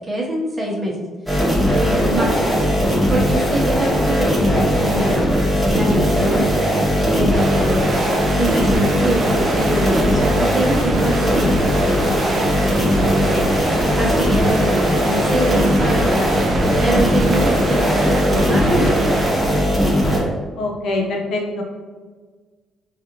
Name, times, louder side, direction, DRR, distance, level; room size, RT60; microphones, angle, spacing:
voice 1, 0.1-0.9 1.7-2.6 3.1-5.3 5.7-6.5 7.0-19.1, right 1 dB, 25° right, -3 dB, 0.9 m, -24 dB
sound 1, 1.3-20.2, equal, ahead, 1.0 m, -18 dB
sound 2, 7.3-19.3, right 3 dB, 45° right, 0.5 m, -28 dB
voice 2, 11.0-11.4 20.6-21.6, left 2 dB, 65° left, 0 dB, 0.8 m, -26 dB
4.1 x 2.4 x 2.8 m, 1.4 s
cardioid pair, 125°, 0 cm